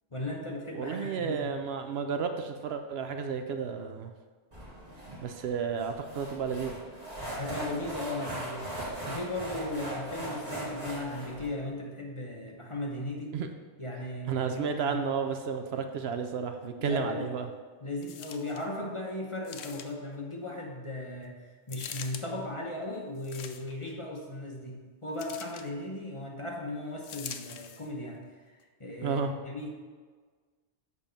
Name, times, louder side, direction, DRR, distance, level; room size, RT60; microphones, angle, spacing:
voice 1, 0.1-1.5 7.3-8.7 9.1-13.4 13.8-15.0 16.8-17.3 17.8-21.4 21.7-28.5 28.8-29.7, left 1 dB, 30° left, -1 dB, 0.9 m, -37 dB
voice 2, 0.8-4.1 5.2-6.8 13.3-13.5 14.3-17.5 29.0-29.3, right 6 dB, 70° right, 7 dB, 0.8 m, -32 dB
sound 1, 4.5-11.5, right 1 dB, 35° right, 2.2 m, -39 dB
sound 2, 18.0-18.7 19.4-20.1 21.7-22.2 23.2-23.9 25.2-25.7 27.0-27.9 28.6-28.7, left 8 dB, 70° left, 0.8 m, -43 dB
7.2 x 4.3 x 5.2 m, 1.5 s
omnidirectional pair, 1.2 m